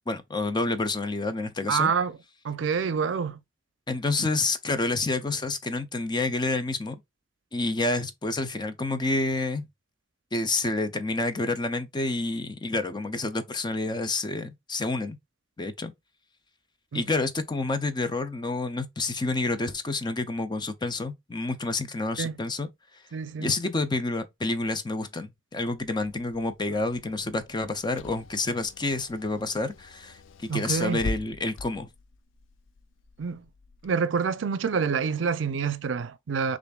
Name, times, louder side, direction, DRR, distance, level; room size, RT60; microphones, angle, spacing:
voice 1, 0.1-1.9 3.9-7.0 7.5-9.6 10.3-15.2 15.6-15.9 16.9-22.7 23.4-31.9, left 2 dB, 25° left, 0.5 m, -29 dB
voice 2, 1.7-2.2 2.4-3.4 16.9-17.0 22.2-22.3 23.1-23.5 30.5-31.0 33.2-33.4 33.8-36.6, right 6 dB, 80° right, 0.5 m, -27 dB
Car / Engine, 25.6-33.9, left 2 dB, 90° left, 0.4 m, -43 dB
6.7 x 2.6 x 2.3 m
head